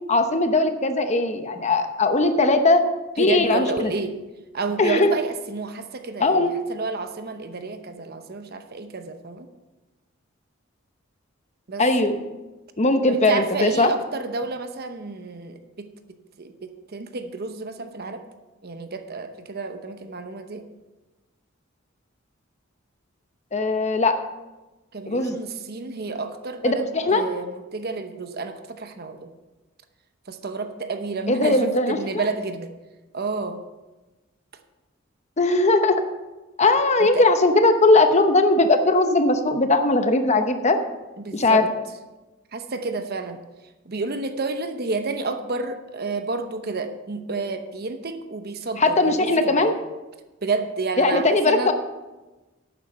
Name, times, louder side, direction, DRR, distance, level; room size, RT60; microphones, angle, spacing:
voice 1, 0.1-2.9 3.2-3.9 4.8-5.1 6.2-6.5 11.8-12.2 12.8-13.9 23.5-24.1 25.1-25.4 26.6-27.3 31.3-32.2 35.4-36.0 36.6-40.8 41.3-41.7 48.8-49.7 51.0-51.7, left 2 dB, 35° left, 8 dB, 0.9 m, -19 dB
voice 2, 3.2-4.2 4.5-9.5 11.7-11.9 13.1-15.9 16.4-18.2 18.6-20.6 24.9-29.3 30.3-32.7 33.1-33.6 37.0-37.2 41.2-41.7 42.5-43.4 43.8-49.7 50.4-51.7, right 3 dB, 50° right, 8 dB, 0.9 m, -30 dB
11.5 x 9.4 x 4.3 m, 1.1 s
head